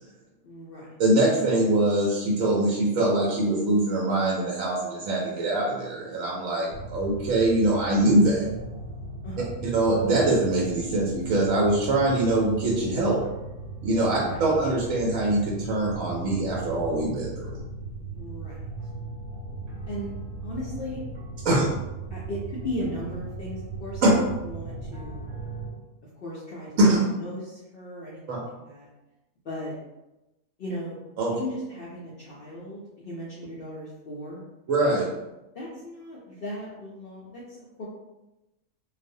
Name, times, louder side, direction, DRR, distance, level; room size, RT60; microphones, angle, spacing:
voice 1, 0.4-0.9 9.2-9.6 14.1-14.4 18.1-18.6 19.9-20.1 20.4-21.0 22.1-25.3 26.2-28.9 29.4-29.7 30.6-31.0 31.3-34.4 35.5-37.8, left 1 dB, 85° left, -6 dB, 0.5 m, -37 dB
voice 2, 1.0-8.4 9.6-13.2 13.8-17.5 21.4-21.6 24.0-24.1 26.8-27.0 28.3-28.4 31.2-31.3 34.7-35.1, right 1 dB, 75° right, -4 dB, 0.9 m, -23 dB
sound 1, 6.7-25.7, right 3 dB, 45° right, 1.0 m, -37 dB
2.4 x 2.0 x 2.5 m, 0.98 s
omnidirectional pair, 1.5 m